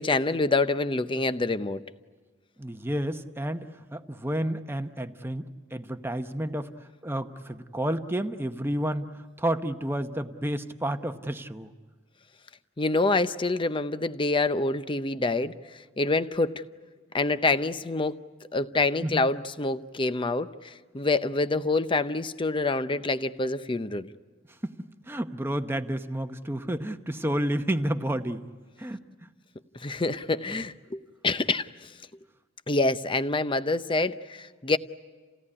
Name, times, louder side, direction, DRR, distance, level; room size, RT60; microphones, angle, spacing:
voice 1, 0.0-1.8 12.8-15.5 16.0-16.6 17.1-18.2 18.5-24.1 29.8-31.7 32.7-34.8, left 3 dB, 25° left, 0.7 m, -26 dB
voice 2, 2.6-6.7 7.0-9.1 9.4-11.7 19.0-19.1 24.6-24.8 25.1-28.5 28.8-29.1, right 1 dB, 10° right, 0.9 m, -30 dB
29.5 x 17.0 x 9.8 m
head